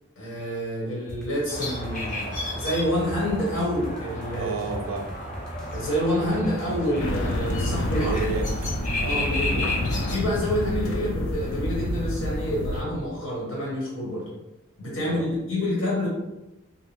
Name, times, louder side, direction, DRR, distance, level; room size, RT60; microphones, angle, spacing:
voice 1, 0.2-4.5 5.7-8.1 9.0-9.6 10.1-14.3 14.8-16.1, equal, 75° left, -6 dB, 1.2 m, -28 dB
sound 1, 1.1-9.1, right 1 dB, 5° left, 0.4 m, -40 dB
sound 2, 1.5-10.2, left 1 dB, 40° left, 0.7 m, -33 dB
voice 2, 4.3-5.1 7.9-8.7 9.0-9.3 15.0-15.3, right 3 dB, 75° right, 5 dB, 0.4 m, -31 dB
sound 3, 7.0-12.8, left 1 dB, 90° left, 0.4 m, -28 dB
2.6 x 2.1 x 3.0 m, 0.96 s
head